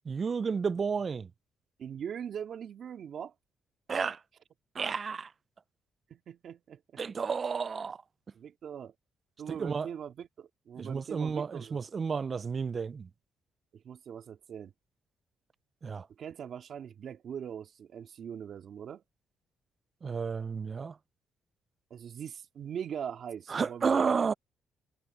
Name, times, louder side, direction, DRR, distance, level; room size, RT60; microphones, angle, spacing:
voice 1, 0.1-1.3 3.9-4.2 4.8-5.3 7.0-8.0 9.5-9.9 10.8-13.1 15.8-16.1 20.0-21.0 23.5-24.3, right 5 dB, 40° right, 0.3 m, -31 dB
voice 2, 1.8-3.3 6.1-7.2 8.3-8.9 9.4-11.8 13.7-14.7 16.2-19.0 21.9-24.3, right 8 dB, 60° right, 2.2 m, -41 dB
cardioid pair, 90°, 0 cm